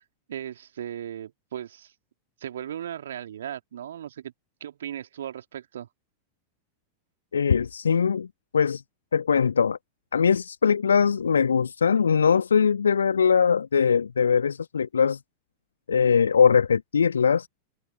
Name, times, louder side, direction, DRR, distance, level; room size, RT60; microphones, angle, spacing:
voice 1, 0.3-1.9 2.4-4.3 4.6-5.9, right 10 dB, 65° right, 2.9 m, -37 dB
voice 2, 7.3-8.3 8.5-8.8 9.1-9.8 10.1-15.2 15.9-17.5, left 6 dB, 70° left, 1.6 m, -21 dB
figure-of-eight pair, 90°, 0 cm